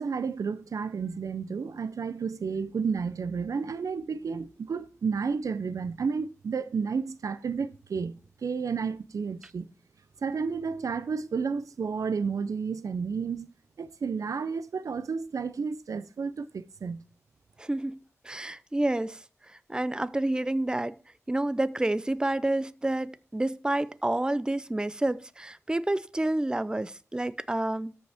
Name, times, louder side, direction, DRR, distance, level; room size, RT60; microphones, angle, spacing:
voice 1, 0.0-9.7 10.2-13.5 13.8-17.0, right 5 dB, 90° right, 0.5 m, -31 dB
voice 2, 17.6-19.2 19.7-21.0 21.3-27.9, right 1 dB, 15° right, 0.5 m, -29 dB
13.5 x 5.3 x 3.5 m
wide cardioid pair, 70°, 6 cm